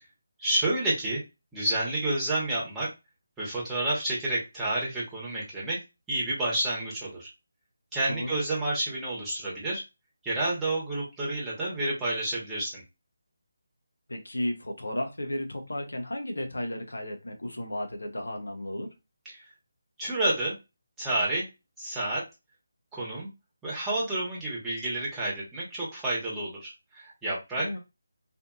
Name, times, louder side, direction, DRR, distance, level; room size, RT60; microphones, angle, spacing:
voice 1, 0.4-1.2 1.5-2.9 3.4-5.8 6.1-7.3 7.9-9.8 10.2-12.8 19.3-19.4 20.0-20.5 21.0-21.5 21.8-22.2 22.9-23.3 23.6-27.8, right 1 dB, 5° right, -6 dB, 1.0 m, -29 dB
voice 2, 8.1-8.4 14.1-18.9 27.5-27.8, left 1 dB, 85° left, 3 dB, 0.8 m, -34 dB
2.6 x 2.5 x 2.3 m, 0.25 s
figure-of-eight pair, 160°, 0 cm